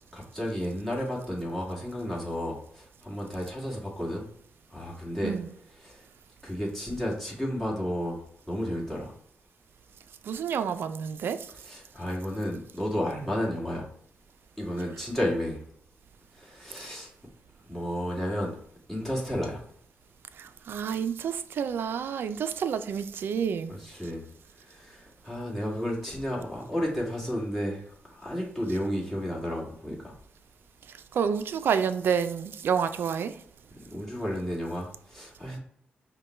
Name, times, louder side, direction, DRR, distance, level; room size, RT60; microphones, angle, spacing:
voice 1, 0.1-4.3 4.7-5.4 5.8-6.0 6.4-8.2 8.5-9.1 11.6-13.9 14.6-15.6 16.4-17.1 17.7-18.5 18.9-19.6 23.7-24.2 24.7-27.8 28.1-30.1 33.8-35.6, equal, 5° left, 1.8 m, -32 dB
voice 2, 10.2-11.5 20.4-23.8 31.1-33.4, right 7 dB, 70° right, 0.4 m, -29 dB
5.4 x 2.2 x 4.2 m
cardioid pair, 90°, 4 cm